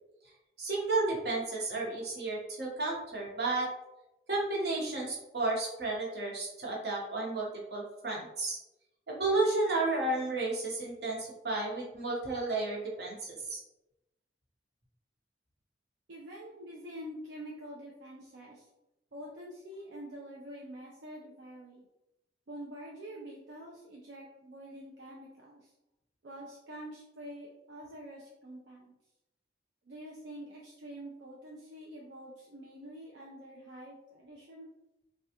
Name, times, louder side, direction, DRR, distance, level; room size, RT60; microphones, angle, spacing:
voice 1, 0.6-3.7 4.3-8.6 9.1-13.6, right 2 dB, 65° right, -3 dB, 1.0 m, -32 dB
voice 2, 16.1-18.7 19.1-21.8 22.5-25.7 26.2-28.9 29.9-34.7, equal, 85° right, -3 dB, 0.5 m, -46 dB
3.4 x 2.3 x 2.8 m, 0.92 s
head